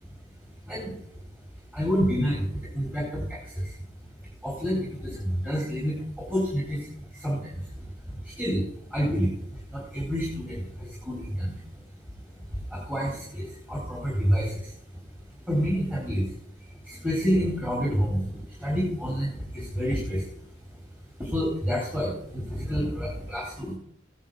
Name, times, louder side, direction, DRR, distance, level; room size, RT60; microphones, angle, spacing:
voice 1, 0.6-1.0 1.7-3.8 4.4-11.6 12.5-14.7 15.5-16.3 16.8-20.3 21.2-23.7, equal, 10° right, -5 dB, 3.9 m, -29 dB
16.0 x 11.0 x 3.8 m, 0.73 s
head